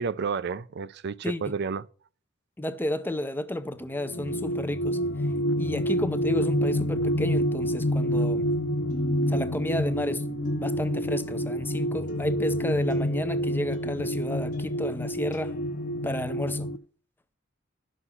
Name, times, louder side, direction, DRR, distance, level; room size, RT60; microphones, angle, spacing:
voice 1, 0.0-1.8, right 5 dB, 55° right, 0.4 m, -31 dB
voice 2, 1.2-1.5 2.6-5.0 5.6-8.4 9.3-10.2 10.6-15.5 16.0-16.7, left 1 dB, 10° left, 0.5 m, -32 dB
sound 1, 4.0-16.8, equal, 65° left, 0.6 m, -28 dB
sound 2, 8.9-16.2, equal, 40° left, 1.0 m, -41 dB
11.0 x 6.4 x 5.6 m
head